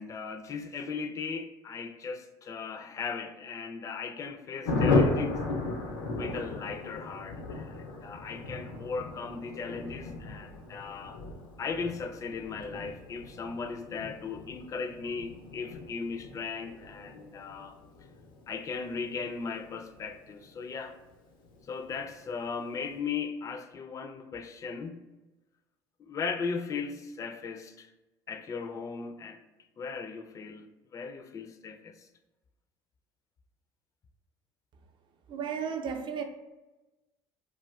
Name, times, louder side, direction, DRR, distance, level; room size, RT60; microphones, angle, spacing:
voice 1, 0.0-5.4 6.1-11.2 11.6-17.8 18.5-21.0 21.7-25.0 26.0-27.9 28.3-29.4 29.8-32.1, left 5 dB, 30° left, 0.3 m, -37 dB
Thunder, 4.6-20.8 21.1-21.2 21.4-21.6 21.8-22.2, left 3 dB, 90° left, 0.5 m, -35 dB
voice 2, 35.3-36.2, right 7 dB, 45° right, 0.5 m, -33 dB
2.3 x 2.3 x 3.3 m
supercardioid pair, 80°, 11 cm